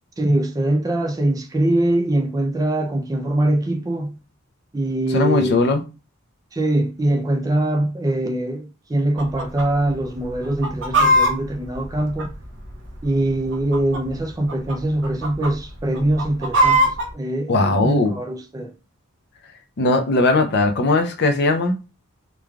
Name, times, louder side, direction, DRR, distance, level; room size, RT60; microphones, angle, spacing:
voice 1, 0.2-4.2 4.7-5.5 6.5-12.3 13.0-18.7, right 1 dB, 15° right, 0.3 m, -22 dB
voice 2, 5.1-5.8 17.5-18.1 19.8-21.8, left 2 dB, 50° left, 0.5 m, -18 dB
Chicken rooster, 9.2-9.6 9.9-10.0 10.4-12.7 13.4-14.2 14.5-14.7 15.0-15.5 16.0-17.1, right 1 dB, 60° right, 0.7 m, -19 dB
3.1 x 2.2 x 2.3 m
head